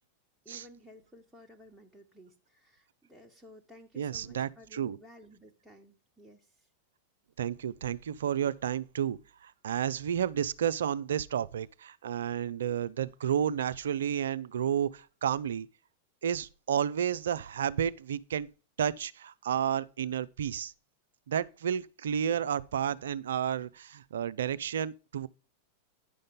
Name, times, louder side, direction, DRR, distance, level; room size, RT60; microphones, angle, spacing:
voice 1, 0.4-6.7, equal, ahead, 1.3 m, -55 dB
voice 2, 4.0-5.0 7.4-15.7 16.2-18.5 18.8-20.7 21.3-25.3, right 9 dB, 65° right, 0.4 m, -31 dB
9.8 x 6.4 x 3.7 m
figure-of-eight pair, 90°, 0 cm